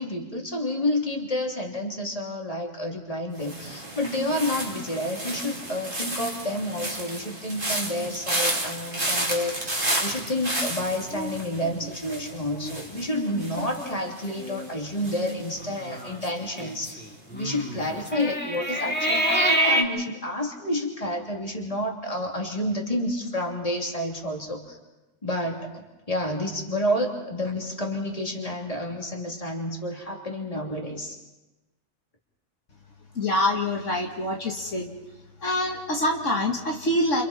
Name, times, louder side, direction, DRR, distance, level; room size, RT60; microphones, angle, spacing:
voice 1, 0.0-17.0 17.3-24.8 25.2-31.2, left 1 dB, 25° left, 0 dB, 3.2 m, -29 dB
sound 1, 3.4-16.4 16.7-17.1, right 1 dB, 40° right, 3.4 m, -32 dB
sound 2, 11.1-12.8 13.2-13.3 13.6-14.0 14.4-14.7 15.6-19.8, right 1 dB, 10° left, 2.2 m, -28 dB
voice 2, 33.2-34.9 35.4-37.2, left 1 dB, 70° left, 0 dB, 2.4 m, -25 dB
30.0 x 28.5 x 4.4 m, 1.1 s
omnidirectional pair, 1.3 m